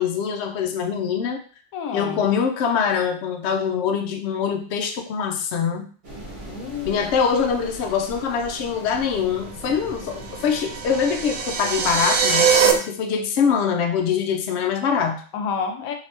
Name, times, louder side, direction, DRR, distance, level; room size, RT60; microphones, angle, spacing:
voice 1, 0.0-1.4 1.9-5.9 6.9-15.2, left 6 dB, 65° left, 4 dB, 0.8 m, -23 dB
voice 2, 1.7-2.2 6.5-7.2 15.3-15.9, left 6 dB, 90° left, 4 dB, 1.1 m, -29 dB
sound 1, 6.0-12.8, right 1 dB, 40° right, 1.2 m, -40 dB
sound 2, 10.2-12.7, right 6 dB, 85° right, 1.0 m, -21 dB
3.2 x 2.7 x 2.8 m, 0.41 s
omnidirectional pair, 1.4 m